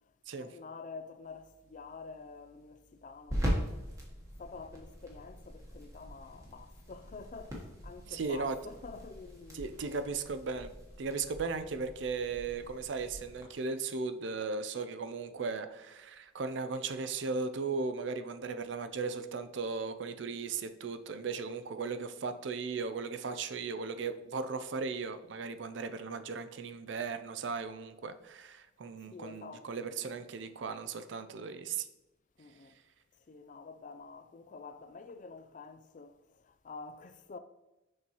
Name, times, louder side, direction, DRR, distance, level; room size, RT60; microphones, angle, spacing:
voice 1, 0.4-3.7 4.4-9.6 29.1-29.7 32.4-32.7 33.3-36.2 36.6-37.4, left 4 dB, 40° left, 0.3 m, -48 dB
sound 1, 1.2-13.4, equal, 15° right, 1.2 m, -41 dB
voice 2, 8.1-8.6 9.5-10.7 11.0-31.9, right 4 dB, 60° right, 0.4 m, -37 dB
6.4 x 5.5 x 3.0 m
head